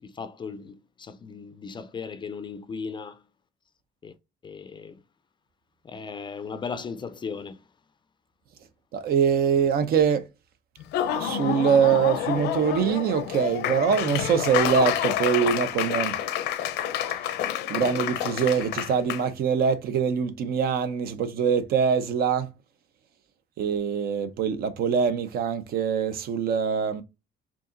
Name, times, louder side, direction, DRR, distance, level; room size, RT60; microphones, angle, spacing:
voice 1, 0.0-3.2 4.0-4.1 4.4-5.0 5.8-7.6, left 5 dB, 30° left, 0.4 m, -37 dB
voice 2, 8.9-10.2 11.1-16.2 17.7-22.5 23.6-27.0, right 7 dB, 65° right, 0.7 m, -24 dB
Laughter / Applause, 10.8-19.2, left 10 dB, 85° left, 0.6 m, -28 dB
4.7 x 2.9 x 2.5 m
cardioid pair, 110°, 17 cm